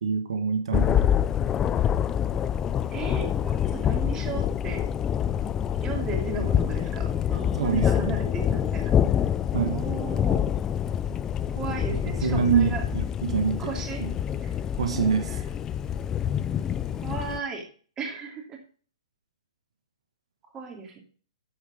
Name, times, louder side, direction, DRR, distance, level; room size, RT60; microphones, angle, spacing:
voice 1, 0.0-1.1 7.5-8.1 9.5-9.8 11.9-12.0 12.2-13.6 14.7-15.4, right 6 dB, 70° right, 8 dB, 1.6 m, -25 dB
Thunder, 0.7-17.4, left 9 dB, 15° left, 0.4 m, -26 dB
voice 2, 2.9-4.9 5.8-8.9 9.7-10.5 11.5-12.8 13.6-14.0 14.4-14.5 15.3-15.4 17.0-17.6 18.0-18.6 20.5-21.0, right 4 dB, 20° right, 3 dB, 2.8 m, -36 dB
13.5 x 5.0 x 5.1 m, 0.42 s
hypercardioid pair, 145°, 3 cm